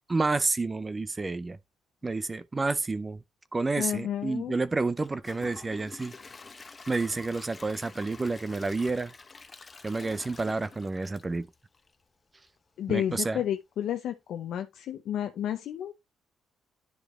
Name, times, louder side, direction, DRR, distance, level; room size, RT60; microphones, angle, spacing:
voice 1, 0.1-1.6 2.0-3.2 3.5-6.1 6.9-9.1 9.8-11.5 12.9-13.4, right 3 dB, 25° right, 0.5 m, -29 dB
voice 2, 3.8-4.5 12.8-15.9, left 10 dB, 75° left, 0.6 m, -31 dB
Gurgling / Toilet flush / Trickle dribble, 5.0-12.0 12.5-12.6 13.0-13.1, left 4 dB, 30° left, 0.8 m, -48 dB
10.5 x 4.9 x 3.1 m
cardioid pair, 90°, 0 cm